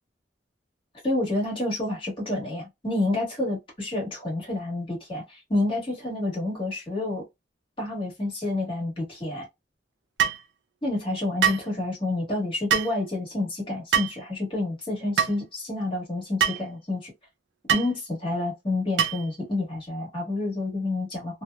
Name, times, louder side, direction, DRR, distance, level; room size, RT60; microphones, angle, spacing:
voice 1, 1.0-7.2 7.8-9.5 10.8-17.1 17.7-21.4, left 2 dB, 30° left, 1.3 m, -29 dB
sound 1, 10.2-10.4 11.4-11.7 12.7-12.9 13.9-14.2 15.2-15.3 16.4-16.6 17.7-17.9 19.0-19.3, right 8 dB, 75° right, 0.4 m, -23 dB
2.7 x 2.1 x 2.2 m
head